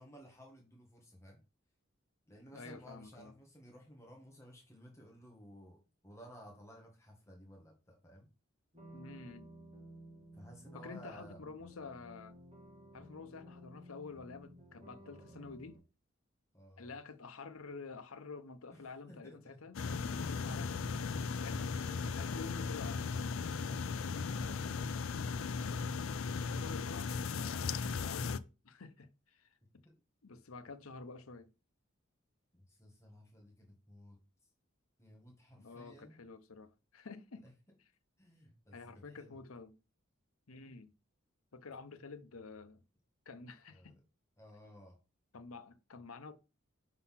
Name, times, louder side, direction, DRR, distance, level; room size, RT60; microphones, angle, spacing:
voice 1, 0.0-1.4 2.3-8.3 10.3-11.4 14.7-15.4 16.5-16.9 18.7-19.6 29.8-29.9 32.5-34.2 35.0-36.2 37.4-37.5 38.2-39.4 43.7-44.0 44.4-45.0, equal, 15° left, 1.6 m, -56 dB
voice 2, 2.5-3.3 8.9-9.5 10.7-12.4 12.9-15.8 16.8-20.9 21.2-21.7 22.0-23.7 26.3-29.5 30.2-31.5 35.6-37.4 38.7-39.7 40.5-40.9 41.5-42.8 43.3-44.0 45.3-46.3, left 4 dB, 90° left, 0.9 m, -49 dB
sound 1, 8.7-15.8, right 1 dB, 30° right, 2.3 m, -55 dB
sound 2, 19.7-28.4, left 5 dB, 75° left, 0.5 m, -37 dB
5.6 x 4.0 x 5.7 m
head